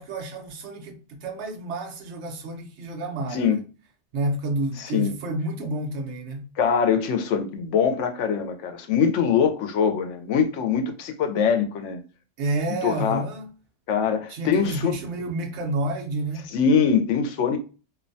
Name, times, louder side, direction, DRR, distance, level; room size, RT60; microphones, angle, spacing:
voice 1, 0.0-3.5 4.1-6.5 12.4-13.5 14.3-16.5, right 2 dB, 70° right, 0.9 m, -30 dB
voice 2, 4.8-5.1 6.6-12.0 12.8-13.2 13.9-15.0 16.5-17.6, left 6 dB, 80° left, 0.9 m, -23 dB
2.6 x 2.1 x 2.5 m
omnidirectional pair, 1.2 m